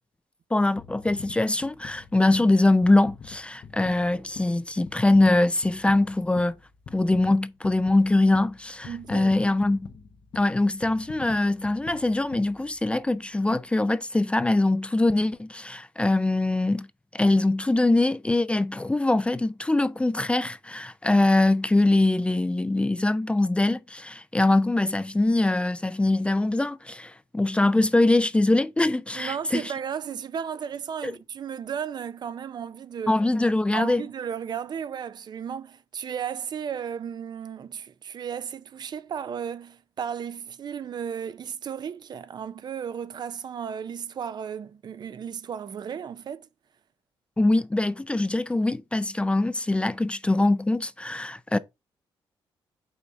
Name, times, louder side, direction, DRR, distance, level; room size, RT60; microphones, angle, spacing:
voice 1, 0.5-6.6 6.9-9.9 10.4-16.9 17.1-29.6 31.0-31.1 33.1-34.0 47.4-51.6, left 2 dB, 10° left, 0.4 m, -23 dB
sound 1, 0.8-13.2 13.7-13.9, left 6 dB, 50° left, 0.7 m, -46 dB
voice 2, 8.8-9.3 29.1-33.2 33.7-46.5, right 8 dB, 50° right, 0.5 m, -34 dB
5.7 x 4.0 x 4.5 m
cardioid pair, 100°, 9 cm